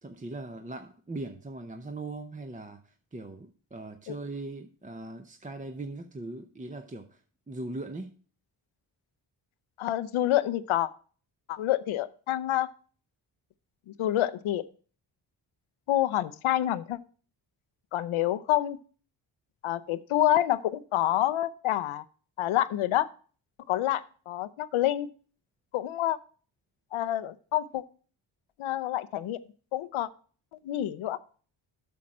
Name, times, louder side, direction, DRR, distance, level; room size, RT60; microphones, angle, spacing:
voice 1, 0.0-7.2 7.5-8.1, right 2 dB, 15° right, 0.8 m, -40 dB
voice 2, 9.8-10.9 11.5-12.7 13.9-14.6 15.9-17.0 17.9-18.8 19.6-22.0 22.4-23.1 23.7-25.1 25.7-26.2 26.9-27.8 28.6-29.4 29.7-30.1 30.6-31.2, left 13 dB, 75° left, 0.7 m, -27 dB
8.6 x 6.3 x 4.2 m
cardioid pair, 55°, 49 cm